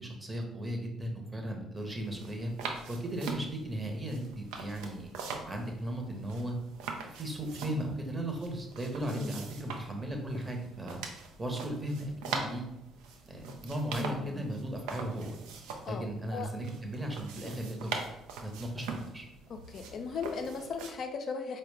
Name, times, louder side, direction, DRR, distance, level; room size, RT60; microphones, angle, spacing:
voice 1, 0.0-2.5 2.9-5.1 5.4-6.5 7.0-11.0 11.4-12.6 13.3-15.3 15.9-17.9 18.4-19.3, right 1 dB, 25° right, 3 dB, 0.8 m, -36 dB
sound 1, 1.8-20.9, right 4 dB, 70° right, 0.4 m, -43 dB
voice 2, 13.9-14.4 15.9-16.5 19.5-21.6, left 5 dB, 50° left, 6 dB, 0.3 m, -38 dB
4.5 x 2.1 x 3.2 m, 0.90 s
figure-of-eight pair, 45°, 0 cm